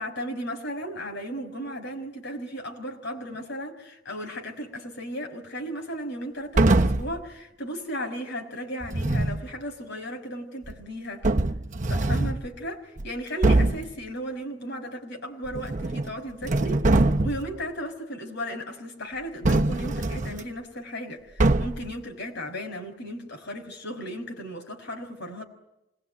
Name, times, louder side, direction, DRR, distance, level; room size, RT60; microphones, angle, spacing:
voice 1, 0.0-11.3 11.9-16.9 17.2-25.4, equal, 65° left, 5.6 m, -35 dB
sound 1, 6.6-7.2 8.8-9.5 10.7-10.8 11.2-12.4 13.0-13.1 13.4-13.9 15.5-16.1 16.4-17.5 19.4-20.4 21.4-21.9, right 2 dB, 40° right, 0.9 m, -23 dB
27.0 x 21.0 x 9.4 m
head